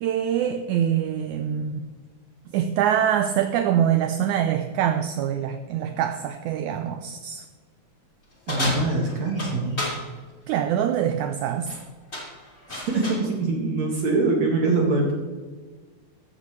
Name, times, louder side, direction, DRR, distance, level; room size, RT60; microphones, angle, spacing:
voice 1, 0.0-1.9 2.5-7.5 10.5-11.7, right 9 dB, 75° right, 7 dB, 2.0 m, -24 dB
sound 1, 8.5-10.0 11.5-11.8 12.1-13.3, left 1 dB, 20° left, 3.2 m, -31 dB
voice 2, 8.5-9.8 12.7-15.1, right 3 dB, 60° right, -1 dB, 3.1 m, -23 dB
15.0 x 14.0 x 3.3 m, 1.4 s
omnidirectional pair, 3.8 m